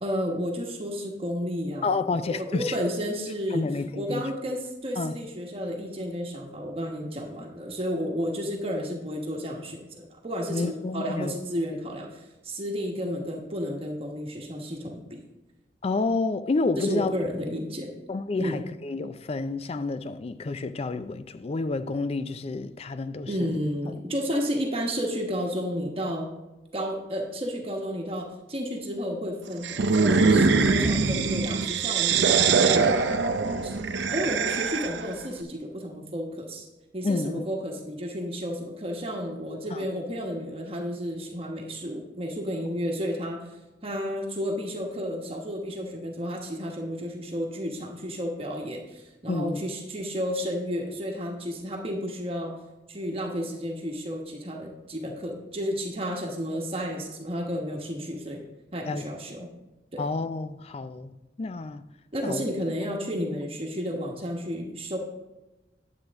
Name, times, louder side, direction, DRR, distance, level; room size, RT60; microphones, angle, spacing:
voice 1, 0.0-3.6 3.9-15.2 16.8-17.9 18.4-18.6 23.3-26.3 26.7-33.0 33.6-33.8 34.1-36.7 36.9-43.4 43.8-52.5 52.9-58.4 58.7-59.5 59.9-60.1 62.1-65.0, equal, 35° right, 1.1 m, -32 dB
voice 2, 1.8-2.8 3.5-4.2 5.0-5.2 10.5-11.3 15.8-17.1 18.1-23.6 37.0-37.5 39.7-39.9 49.3-49.6 58.9-59.1 60.0-61.8 62.2-62.4, left 3 dB, 35° left, 0.4 m, -29 dB
sound 1, 29.6-35.1, right 4 dB, 90° right, 0.6 m, -23 dB
9.9 x 7.8 x 3.5 m
head